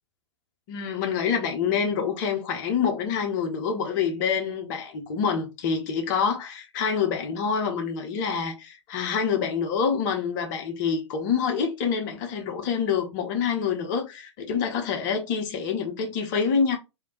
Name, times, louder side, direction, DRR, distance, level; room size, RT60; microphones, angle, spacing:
voice 1, 0.7-16.8, left 6 dB, 40° left, 1.0 m, -26 dB
3.4 x 2.8 x 2.9 m
figure-of-eight pair, 105°, 15 cm